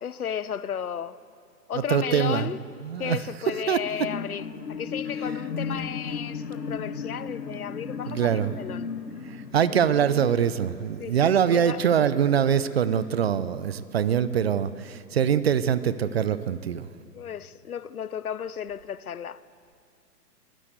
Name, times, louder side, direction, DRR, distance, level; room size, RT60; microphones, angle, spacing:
voice 1, 0.0-1.2 1.7-2.6 3.0-8.9 11.0-11.8 17.1-19.4, left 8 dB, 60° left, 0.8 m, -34 dB
voice 2, 1.7-2.5 2.8-3.2 3.7-3.8 8.1-8.5 9.2-16.9, right 8 dB, 40° right, 0.8 m, -23 dB
sound 1, 3.8-11.6 12.0-12.1, left 5 dB, 85° left, 1.2 m, -35 dB
24.5 x 15.5 x 8.0 m
figure-of-eight pair, 130°, 49 cm